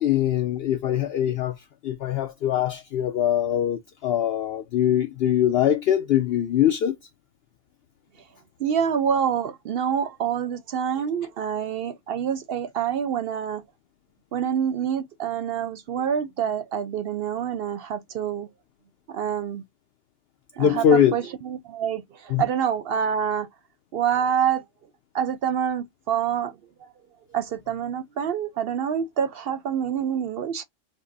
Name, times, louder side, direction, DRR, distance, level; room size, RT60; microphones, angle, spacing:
voice 1, 0.0-1.5 1.8-7.0 20.6-21.2 22.3-22.4, left 10 dB, 65° left, 0.7 m, -22 dB
voice 2, 8.6-13.6 14.3-18.5 19.1-19.6 20.6-20.9 21.1-23.5 23.9-24.6 25.1-26.6 27.3-30.6, right 8 dB, 65° right, 0.7 m, -26 dB
5.4 x 2.1 x 3.9 m
omnidirectional pair, 1.2 m